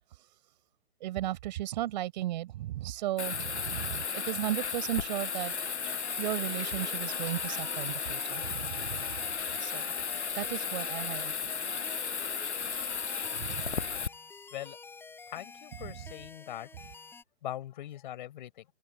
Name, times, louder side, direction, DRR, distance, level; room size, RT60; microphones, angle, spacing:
voice 1, 1.0-5.5 6.2-9.1 9.6-9.9 10.4-11.3 13.4-13.9 15.8-16.0, right 14 dB, 40° right, 6.9 m, -35 dB
Bathtub (filling or washing), 3.2-14.1, left 6 dB, 80° left, 7.2 m, -34 dB
sound 1, 5.4-17.2, left 4 dB, 5° left, 4.6 m, -50 dB
voice 2, 15.3-16.7 17.4-18.6, left 12 dB, 45° left, 5.5 m, -41 dB
hypercardioid pair, 150°, 33 cm